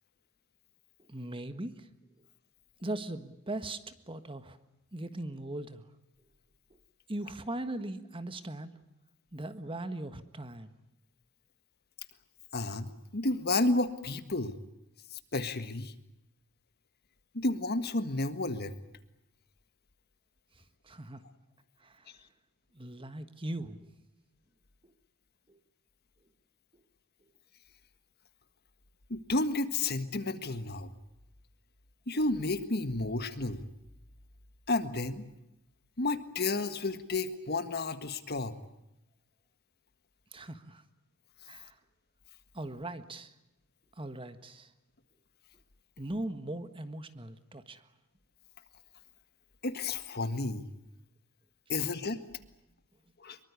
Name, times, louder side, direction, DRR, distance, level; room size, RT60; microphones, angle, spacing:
voice 1, 1.1-1.9 2.8-4.6 4.9-5.9 7.1-8.8 9.3-10.7 20.5-21.2 21.8-22.2 22.7-23.9 24.8-24.9 25.5-25.6 40.3-40.8 41.4-41.8 42.5-43.3 44.0-44.7 46.0-47.8, right 1 dB, 25° right, 11 dB, 1.6 m, -39 dB
voice 2, 12.5-14.6 15.1-15.9 17.3-18.7 29.1-30.9 32.1-33.6 34.7-35.2 36.0-38.6 49.6-50.7 51.7-52.2 53.2-53.4, left 2 dB, 45° left, 11 dB, 1.7 m, -31 dB
24.5 x 23.5 x 8.4 m, 0.87 s
head